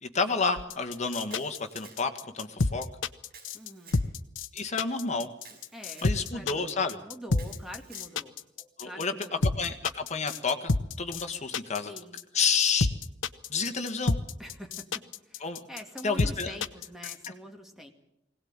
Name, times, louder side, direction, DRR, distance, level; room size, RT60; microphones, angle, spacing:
voice 1, 0.0-2.8 4.5-5.3 6.0-7.0 8.8-9.1 9.6-10.7 11.0-11.9 12.3-12.9 13.5-14.2 15.4-15.6 16.0-16.5, left 5 dB, 35° left, 6 dB, 1.8 m, -30 dB
sound 1, 0.6-17.3, left 3 dB, 90° left, 0.9 m, -29 dB
Camera, 1.3-2.3 3.3-4.1 5.4-6.2 7.3-8.1, right 4 dB, 55° right, 5.8 m, -52 dB
voice 2, 3.5-4.1 5.7-8.3 8.8-9.5 11.9-12.2 14.4-17.9, equal, ahead, 3 dB, 2.3 m, -45 dB
21.5 x 18.0 x 8.9 m, 0.82 s
head